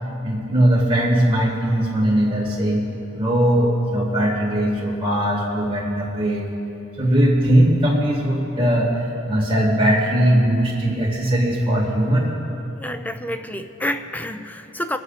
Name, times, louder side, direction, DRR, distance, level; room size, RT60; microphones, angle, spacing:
voice 1, 0.2-2.8 3.1-6.5 7.0-12.3, right 1 dB, 20° right, -4 dB, 2.0 m, -19 dB
voice 2, 12.8-15.0, left 1 dB, 10° left, 9 dB, 0.5 m, -28 dB
23.0 x 7.7 x 4.1 m, 2.9 s
head